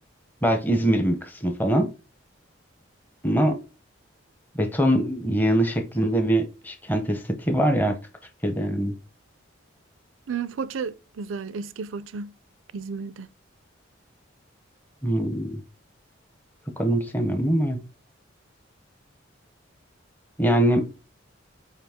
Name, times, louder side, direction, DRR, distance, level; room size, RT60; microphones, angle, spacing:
voice 1, 0.4-1.9 3.2-3.6 4.5-8.0 8.4-8.9 15.0-15.6 16.8-17.8 20.4-20.9, right 1 dB, 10° left, 0.7 m, -23 dB
voice 2, 10.3-12.3 12.7-13.3, right 5 dB, 80° right, 0.4 m, -32 dB
5.8 x 4.8 x 3.5 m
head